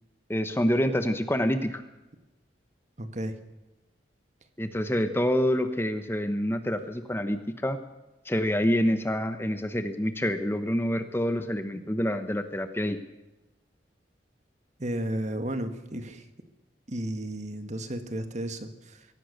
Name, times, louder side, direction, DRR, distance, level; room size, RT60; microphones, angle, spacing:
voice 1, 0.3-1.8 4.6-7.8 8.2-13.0, equal, 15° left, 9 dB, 1.1 m, -27 dB
voice 2, 3.0-3.4 14.8-16.2 16.9-19.1, right 1 dB, 40° right, 8 dB, 1.8 m, -33 dB
23.5 x 17.0 x 6.7 m, 1.0 s
head